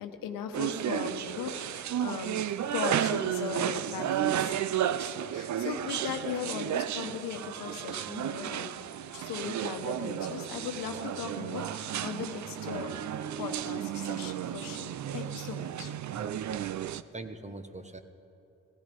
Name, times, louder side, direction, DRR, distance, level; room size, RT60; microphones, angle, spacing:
voice 1, 0.0-2.4 2.7-8.8 9.1-13.0 13.4-15.9, left 7 dB, 90° left, 6 dB, 1.1 m, -38 dB
sound 1, 0.5-17.0, right 10 dB, 60° right, 0.5 m, -33 dB
voice 2, 16.1-16.7 17.1-18.0, right 2 dB, 20° right, 8 dB, 1.1 m, -43 dB
16.0 x 14.5 x 5.3 m, 2.8 s
cardioid pair, 65°, 33 cm